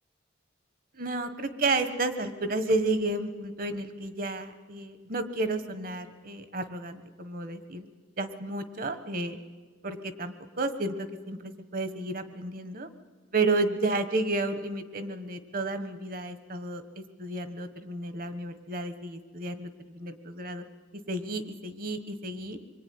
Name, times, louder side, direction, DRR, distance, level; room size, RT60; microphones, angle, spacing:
voice 1, 0.9-7.9 8.2-9.4 9.8-12.9 13.3-20.6 21.1-22.6, right 2 dB, 45° right, 11 dB, 1.5 m, -32 dB
25.5 x 23.0 x 9.6 m, 1.4 s
head